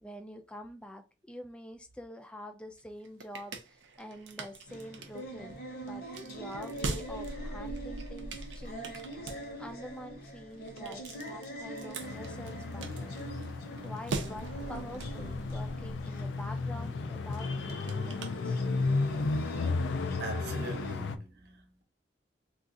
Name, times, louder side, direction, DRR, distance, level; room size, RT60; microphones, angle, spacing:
voice 1, 0.0-5.6 5.8-9.0 9.6-13.2 13.8-18.6, equal, 5° left, 0.3 m, -46 dB
sound 1, 2.8-19.0, right 3 dB, 80° right, 0.5 m, -43 dB
sound 2, 4.7-20.9, right 1 dB, 55° left, 0.9 m, -44 dB
sound 3, 12.0-21.2, left 3 dB, 80° left, 0.4 m, -34 dB
voice 2, 20.2-21.8, right 2 dB, 60° right, 0.8 m, -42 dB
2.5 x 2.4 x 3.7 m
head